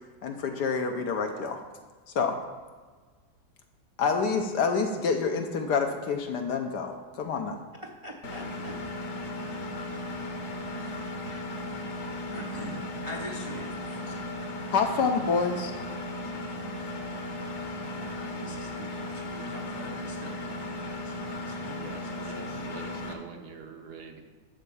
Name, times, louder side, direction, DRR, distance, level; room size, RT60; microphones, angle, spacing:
voice 1, 0.2-1.6 2.1-2.4 4.0-7.6 14.7-15.7, left 5 dB, 65° left, 5 dB, 1.2 m, -27 dB
voice 2, 7.7-8.8 10.7-11.9 12.3-14.4 17.8-22.6, equal, 30° right, -1 dB, 0.6 m, -44 dB
Engine, 8.2-23.1, left 1 dB, 45° left, 1.2 m, -36 dB
voice 3, 21.8-24.2, right 5 dB, 60° right, 4 dB, 1.4 m, -44 dB
12.0 x 4.3 x 7.0 m, 1.4 s
omnidirectional pair, 2.1 m